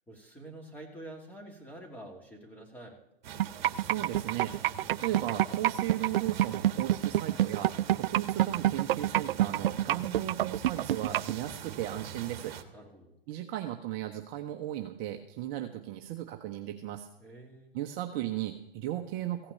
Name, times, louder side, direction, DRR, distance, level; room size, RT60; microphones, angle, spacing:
voice 1, 0.1-3.0 12.7-13.2 17.2-17.7, right 1 dB, 5° left, 0 dB, 2.4 m, -47 dB
sound 1, 3.2-12.6, right 8 dB, 50° right, 1.4 m, -44 dB
sound 2, 3.4-11.3, right 13 dB, 65° right, 0.4 m, -26 dB
voice 2, 3.8-12.5 13.3-17.1 17.7-19.5, right 13 dB, 30° right, 4 dB, 0.8 m, -36 dB
15.5 x 5.8 x 8.3 m, 0.85 s
hypercardioid pair, 130°, 30 cm